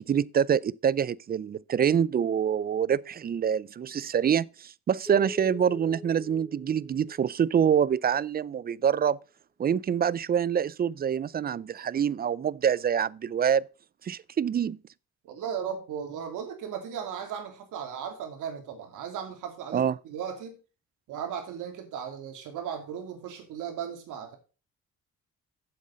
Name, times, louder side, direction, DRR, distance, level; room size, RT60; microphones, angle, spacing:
voice 1, 0.0-9.2 9.6-13.6 14.0-14.8 19.7-20.0, right 8 dB, 30° right, 0.4 m, -26 dB
Keyboard (musical), 5.1-8.0, left 3 dB, 5° left, 3.8 m, -45 dB
voice 2, 15.2-20.6 21.1-24.4, right 8 dB, 85° right, 2.7 m, -36 dB
7.6 x 7.4 x 5.2 m
cardioid pair, 90°, 30 cm